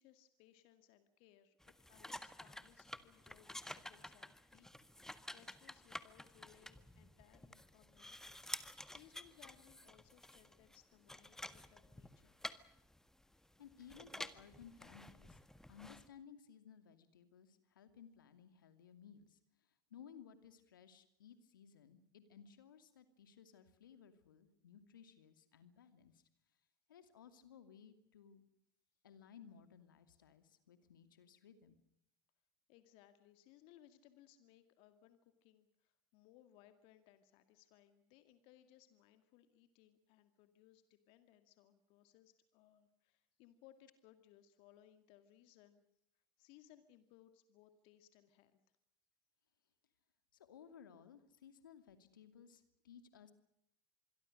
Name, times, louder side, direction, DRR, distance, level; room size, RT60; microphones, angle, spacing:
voice 1, 0.0-12.4 32.7-45.8 46.2-48.6, left 12 dB, 55° left, 10 dB, 2.1 m, -66 dB
sound 1, 1.6-16.1, left 1 dB, 5° left, 1.6 m, -51 dB
voice 2, 13.6-15.4 15.7-26.2 26.9-28.4 29.0-31.8 50.3-53.3, left 7 dB, 80° left, 10 dB, 2.6 m, -59 dB
26.5 x 22.0 x 6.5 m, 0.78 s
hypercardioid pair, 80°, 11 cm